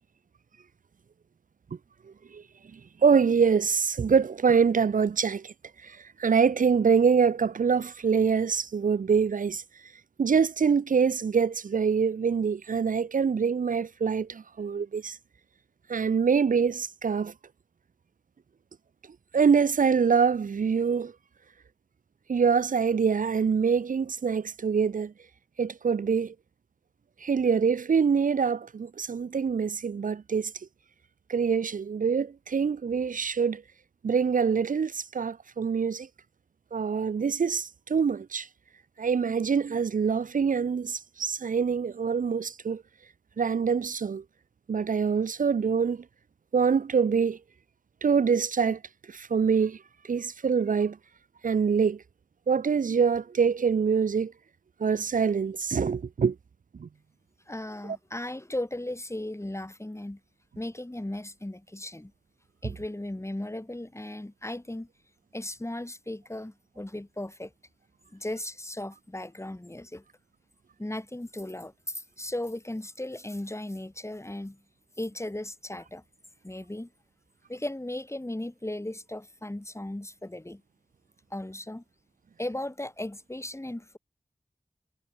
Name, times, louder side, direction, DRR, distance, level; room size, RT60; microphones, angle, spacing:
voice 1, 2.7-5.5 5.8-9.6 10.2-15.2 15.9-17.3 19.3-21.1 22.3-25.1 25.6-26.3 27.2-30.5 31.3-33.6 34.0-36.1 36.7-38.5 39.0-42.8 43.4-44.2 44.7-46.0 46.5-47.4 48.0-48.8 49.1-51.0 51.4-52.0 52.5-54.3 54.8-56.4 56.8-56.9, right 6 dB, 80° right, 0.5 m, -25 dB
voice 2, 57.5-60.2 60.6-62.1 62.6-64.9 65.3-67.5 68.1-70.0 70.8-74.6 75.0-76.0 76.4-76.9 77.5-80.6 81.3-81.8 82.4-84.0, left 1 dB, 20° left, 4.1 m, -36 dB
wide cardioid pair, 70°, 13 cm